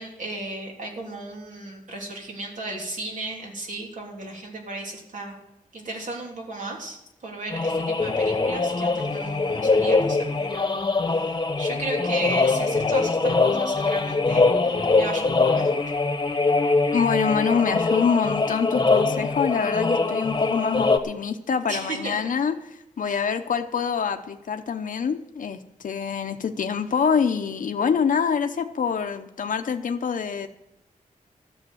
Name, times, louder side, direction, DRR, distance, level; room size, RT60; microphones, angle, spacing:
voice 1, 0.0-5.3 5.7-7.0 7.2-15.9 21.7-22.2 23.0-23.2, right 2 dB, 60° right, 0 dB, 3.2 m, -35 dB
sound 1, 7.5-21.0, left 3 dB, 30° left, 1.2 m, -23 dB
voice 2, 16.9-30.5, left 6 dB, 70° left, 6 dB, 0.8 m, -25 dB
13.0 x 7.3 x 9.2 m, 0.86 s
wide cardioid pair, 140°, 14 cm